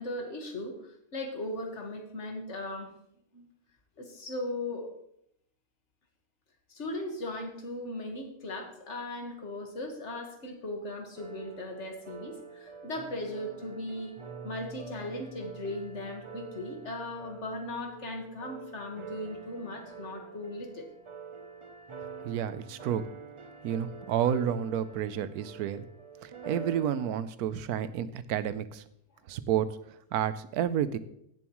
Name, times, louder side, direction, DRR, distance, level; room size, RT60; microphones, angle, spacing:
voice 1, 0.0-2.9 3.3-3.4 4.0-4.9 6.7-14.2 14.4-20.9, left 1 dB, 50° left, 2 dB, 1.9 m, -38 dB
sound 1, 11.2-27.1, right 5 dB, 45° right, 0.3 m, -46 dB
voice 2, 22.2-23.0 23.6-25.8 26.2-28.8 29.3-29.7 30.1-31.0, right 9 dB, 75° right, 14 dB, 1.1 m, -30 dB
16.5 x 7.1 x 3.1 m, 0.74 s
omnidirectional pair, 1.6 m